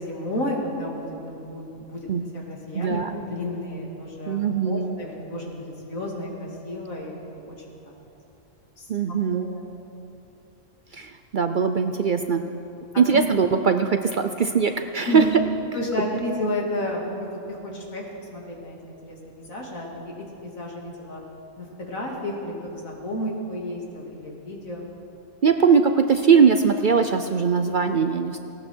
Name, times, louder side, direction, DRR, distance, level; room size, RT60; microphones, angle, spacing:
voice 1, 0.0-2.1 2.3-3.0 3.3-7.8 8.8-8.9 9.3-9.7 13.1-13.2 15.1-15.4 15.7-18.0 18.3-21.2 21.6-24.9, left 1 dB, 90° left, -2 dB, 2.9 m, -32 dB
voice 2, 2.7-3.1 4.3-5.0 8.9-9.5 10.9-12.4 13.0-15.2 25.4-28.4, right 6 dB, 55° right, 7 dB, 0.6 m, -21 dB
18.5 x 17.5 x 4.5 m, 2.8 s
omnidirectional pair, 1.4 m